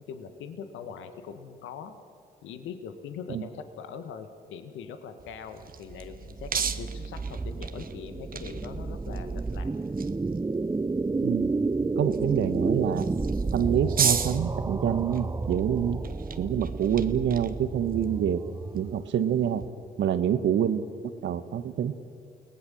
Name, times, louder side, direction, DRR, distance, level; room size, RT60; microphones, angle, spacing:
voice 1, 0.0-1.9 2.4-9.7, left 6 dB, 70° left, 8 dB, 1.7 m, -41 dB
sound 1, 5.2-19.7, right 7 dB, 45° right, 1.4 m, -37 dB
sound 2, 5.9-19.1, right 3 dB, 15° right, 0.6 m, -31 dB
voice 2, 11.2-11.5 12.0-13.1 13.5-16.0 16.4-18.4 18.7-19.6 20.0-20.8 21.2-21.9, right 9 dB, 60° right, 11 dB, 1.4 m, -26 dB
30.0 x 19.0 x 7.2 m, 2.3 s
hypercardioid pair, 45°, 21 cm